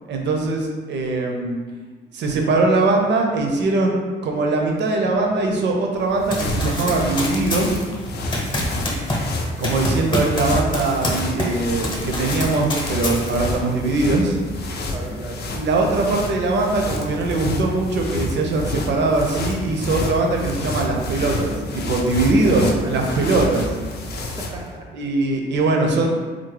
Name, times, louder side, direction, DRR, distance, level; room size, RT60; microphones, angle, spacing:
voice 1, 0.1-1.6 2.1-7.8 9.6-14.4 15.5-23.8 24.9-26.1, right 2 dB, 65° right, 1 dB, 0.6 m, -21 dB
sound 1, 5.9-24.7, left 1 dB, 55° left, 0.5 m, -29 dB
Run, 6.3-11.6 11.8-13.6, left 1 dB, 25° left, 0.8 m, -27 dB
voice 2, 8.5-9.2 14.8-15.4 22.4-22.9 24.4-24.9, right 1 dB, 15° right, -1 dB, 0.5 m, -36 dB
3.6 x 2.0 x 3.2 m, 1.4 s
cardioid pair, 90°, 20 cm